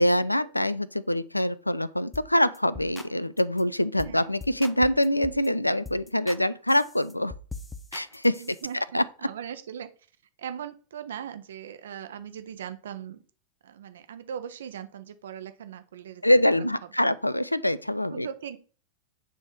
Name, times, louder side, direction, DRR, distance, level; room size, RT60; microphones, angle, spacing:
voice 1, 0.0-7.3 7.9-8.4 8.7-9.0 16.2-18.3, left 1 dB, 85° left, 0.4 m, -24 dB
sound 1, 2.1-2.3 2.5-3.1 3.4-3.6 4.0-4.2 4.4-5.5 5.9-6.4 6.7-8.7, left 3 dB, 10° left, 0.8 m, -42 dB
voice 2, 8.4-8.8 9.2-9.9 10.4-13.2 13.6-16.6 18.1-18.6, right 9 dB, 65° right, 0.9 m, -39 dB
9.3 x 3.5 x 6.0 m
figure-of-eight pair, 90°, 0 cm